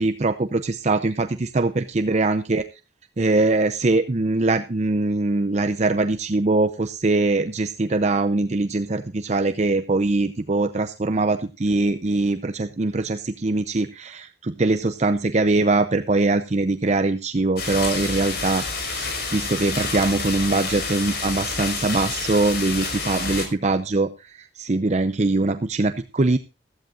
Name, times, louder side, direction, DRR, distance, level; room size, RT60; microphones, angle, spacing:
voice 1, 0.0-2.6 3.2-26.4, right 2 dB, 40° right, 9 dB, 0.7 m, -22 dB
sound 1, 17.6-23.5, left 3 dB, 60° left, 4.9 m, -29 dB
15.0 x 14.5 x 2.5 m, 0.31 s
head